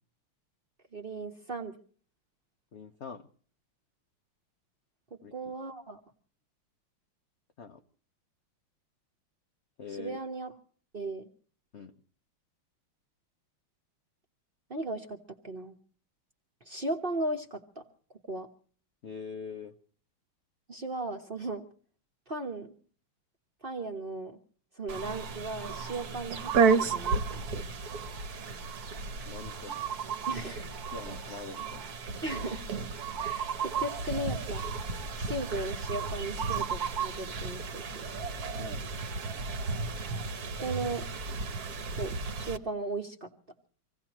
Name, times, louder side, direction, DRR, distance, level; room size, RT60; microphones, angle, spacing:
voice 1, 0.9-1.7 5.3-6.0 10.0-10.5 10.9-11.3 14.7-15.7 16.6-17.8 18.3-18.5 20.7-21.6 22.3-22.7 23.6-24.4 24.8-27.6 30.3-30.7 32.2-32.6 33.2-34.7 35.1-38.1 40.6-41.0 41.9-43.3, right 2 dB, 35° right, 4 dB, 0.9 m, -36 dB
voice 2, 2.7-3.3 5.2-5.3 7.6-7.8 9.8-10.2 11.7-11.9 19.0-19.7 29.2-29.9 30.9-31.8 38.6-38.8, left 5 dB, 80° left, 6 dB, 0.6 m, -43 dB
sound 1, 24.9-42.6, right 5 dB, 55° right, 1.3 m, -33 dB
26.0 x 16.5 x 3.0 m, 0.44 s
omnidirectional pair, 2.3 m